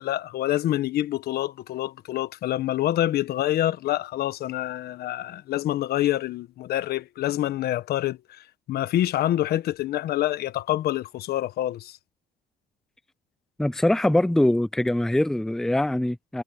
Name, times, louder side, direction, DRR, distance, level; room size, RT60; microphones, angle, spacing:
voice 1, 0.0-8.4 8.7-12.0, left 13 dB, 70° left, 1.2 m, -26 dB
voice 2, 13.6-16.4, left 1 dB, 5° left, 0.6 m, -23 dB
cardioid pair, 110°, 17 cm